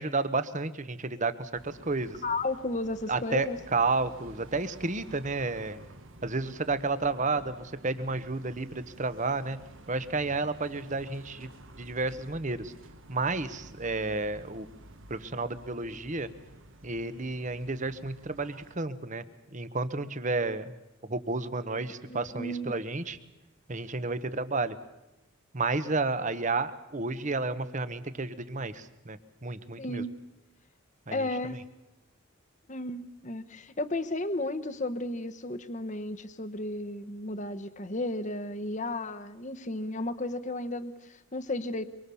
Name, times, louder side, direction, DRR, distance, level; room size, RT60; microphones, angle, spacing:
voice 1, 0.0-2.2 3.1-5.8 6.2-9.6 9.9-11.5 11.8-12.7 13.1-14.7 15.1-16.3 16.8-19.2 19.5-20.7 21.1-23.2 23.7-24.8 25.5-30.0 31.1-31.3, right 3 dB, 35° right, 13 dB, 1.1 m, -31 dB
sound 1, 1.5-18.8, right 1 dB, 60° right, 1.5 m, -51 dB
voice 2, 2.2-3.6 22.1-22.7 29.8-30.1 31.1-31.6 32.7-41.8, left 2 dB, 35° left, 10 dB, 1.1 m, -33 dB
25.0 x 23.5 x 7.1 m, 0.97 s
head